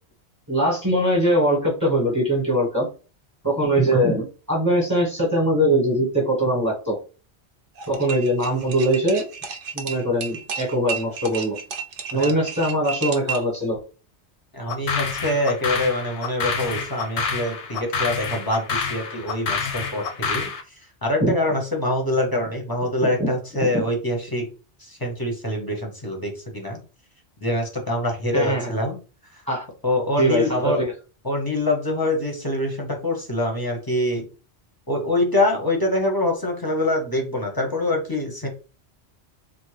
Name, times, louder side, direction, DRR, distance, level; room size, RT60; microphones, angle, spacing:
voice 1, 0.5-2.9 3.4-7.0 7.9-9.2 9.7-11.6 12.1-13.8 21.2-21.3 23.0-23.3 23.7-23.8 28.3-28.7 29.5-29.6 30.2-30.9, right 1 dB, 15° right, -2 dB, 0.8 m, -21 dB
sound 1, 7.8-13.6, right 6 dB, 60° right, 0.7 m, -32 dB
voice 2, 14.5-24.5 24.8-26.8 27.4-29.0 29.3-29.4 29.8-30.8 31.2-34.2 34.9-38.5, left 1 dB, 25° left, 1 dB, 0.6 m, -25 dB
sound 2, 14.7-20.6, left 5 dB, 80° left, 0.9 m, -28 dB
3.3 x 2.1 x 3.1 m, 0.35 s
omnidirectional pair, 1.1 m